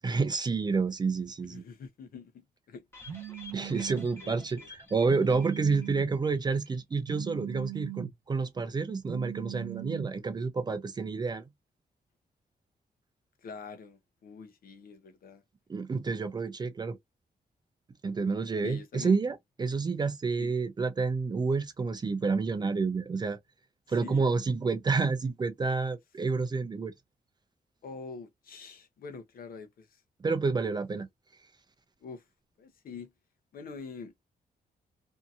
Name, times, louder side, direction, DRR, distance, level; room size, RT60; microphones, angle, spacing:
voice 1, 0.0-1.6 3.5-11.4 15.7-17.0 18.0-23.4 23.9-26.9 30.2-31.1, right 4 dB, 25° right, 0.4 m, -29 dB
voice 2, 1.4-3.2 3.6-4.7 13.4-15.4 18.6-19.2 20.4-20.5 23.9-24.3 27.8-30.0 32.0-32.3 32.6-33.1 33.5-34.1, left 5 dB, 65° left, 0.7 m, -45 dB
sound 1, 2.9-6.4 6.6-6.7 7.1-7.2, left 3 dB, 15° left, 0.9 m, -50 dB
Telephone, 3.1-4.1 5.1-6.1 7.1-8.1 9.1-10.1, right 12 dB, 75° right, 0.8 m, -40 dB
2.7 x 2.7 x 2.4 m
wide cardioid pair, 165°, 16 cm